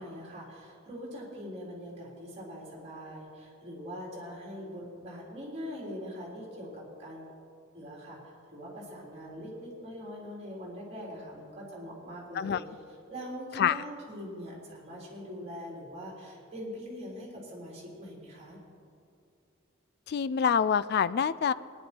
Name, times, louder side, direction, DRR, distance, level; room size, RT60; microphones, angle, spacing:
voice 1, 0.0-7.3 7.7-8.2 8.5-12.6 13.1-18.6, equal, 30° right, -4 dB, 3.6 m, -42 dB
voice 2, 20.1-21.5, left 7 dB, 50° left, 16 dB, 0.3 m, -26 dB
18.5 x 10.5 x 4.4 m, 2.3 s
head